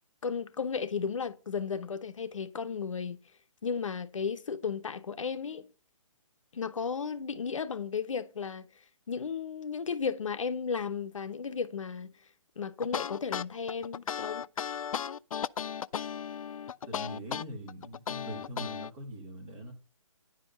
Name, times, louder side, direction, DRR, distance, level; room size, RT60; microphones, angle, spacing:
voice 1, 0.2-3.2 3.6-5.7 6.5-8.7 9.1-12.1 12.6-14.4, left 6 dB, 65° left, 0.9 m, -34 dB
sound 1, 12.8-18.9, left 8 dB, 85° left, 0.4 m, -35 dB
voice 2, 16.9-19.7, right 1 dB, 15° right, 2.3 m, -42 dB
10.5 x 5.3 x 5.4 m
hypercardioid pair, 175°, 17 cm